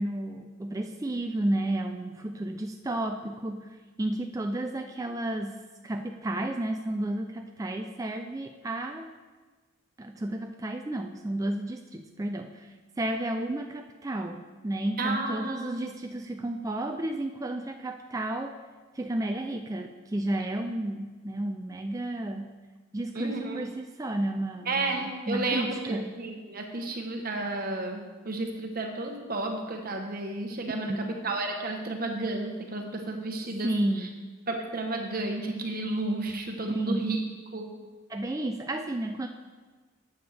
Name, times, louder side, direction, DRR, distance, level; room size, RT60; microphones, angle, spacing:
voice 1, 0.0-9.1 10.0-18.5 18.9-22.6 22.9-26.1 30.7-31.1 33.6-34.3 36.7-37.2 38.1-39.3, right 1 dB, 15° right, 4 dB, 0.3 m, -32 dB
voice 2, 15.0-15.8 23.1-23.6 24.7-33.7 34.5-37.2 37.5-37.7, right 2 dB, 45° right, 3 dB, 1.0 m, -32 dB
11.5 x 7.9 x 3.4 m, 1.3 s
head